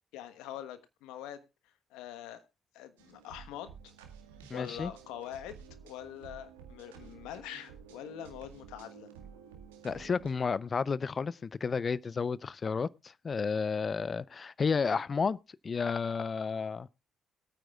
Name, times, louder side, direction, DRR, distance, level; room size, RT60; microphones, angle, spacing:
voice 1, 0.1-1.4 1.9-2.4 2.7-3.9 4.5-5.6 5.8-9.1, left 11 dB, 80° left, 1.3 m, -44 dB
sound 1, 3.0-10.3, right 7 dB, 90° right, 1.8 m, -52 dB
voice 2, 4.5-4.9 9.8-15.4 15.6-16.9, left 5 dB, 45° left, 0.6 m, -32 dB
22.0 x 9.1 x 2.4 m
hypercardioid pair, 50°, 0 cm